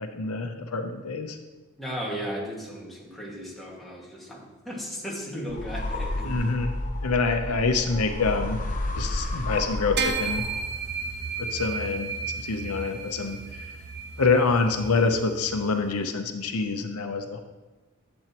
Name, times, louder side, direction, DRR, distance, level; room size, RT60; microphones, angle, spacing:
voice 1, 0.0-1.4 6.2-6.7 7.0-8.6 9.0-10.5 11.4-12.1 12.4-13.7 14.2-17.4, left 4 dB, 85° left, 6 dB, 0.8 m, -26 dB
voice 2, 1.8-6.4, equal, ahead, -5 dB, 1.9 m, -35 dB
sound 1, 5.5-10.8, left 2 dB, 35° left, 0.9 m, -31 dB
sound 2, 10.0-15.6, right 5 dB, 50° right, 0.8 m, -33 dB
12.0 x 8.1 x 3.0 m, 1.2 s
head